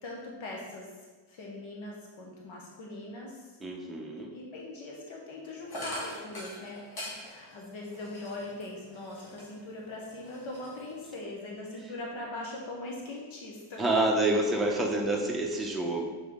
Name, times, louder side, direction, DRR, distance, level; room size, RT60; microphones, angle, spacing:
voice 1, 0.0-3.6 4.3-13.8, left 2 dB, 75° left, -2 dB, 1.0 m, -41 dB
voice 2, 3.6-4.3 13.8-16.0, right 2 dB, ahead, -2 dB, 0.6 m, -28 dB
sound 1, 5.7-9.7 10.1-11.2, equal, 50° left, 1.5 m, -43 dB
6.9 x 4.1 x 3.6 m, 1.3 s
wide cardioid pair, 155°, 48 cm